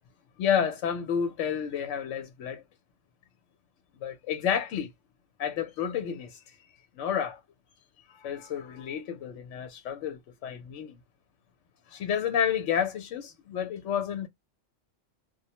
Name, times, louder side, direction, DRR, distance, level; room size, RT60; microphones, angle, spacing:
voice 1, 0.4-2.6 4.0-4.9 5.4-6.4 7.0-7.4 8.2-10.9 11.9-14.3, left 8 dB, 75° left, 1.0 m, -30 dB
2.4 x 2.0 x 2.8 m
omnidirectional pair, 1.3 m